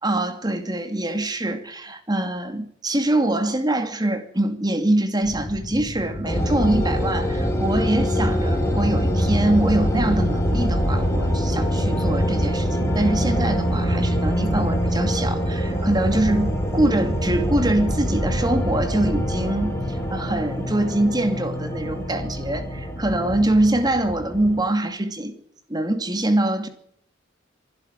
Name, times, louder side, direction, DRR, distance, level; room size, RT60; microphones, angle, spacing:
voice 1, 0.0-25.4 25.7-26.7, right 1 dB, 20° right, 2.6 m, -24 dB
sound 1, 5.2-19.7, left 1 dB, 70° left, 3.7 m, -35 dB
sound 2, 6.2-24.6, equal, 15° left, 5.0 m, -24 dB
24.5 x 12.5 x 9.9 m
head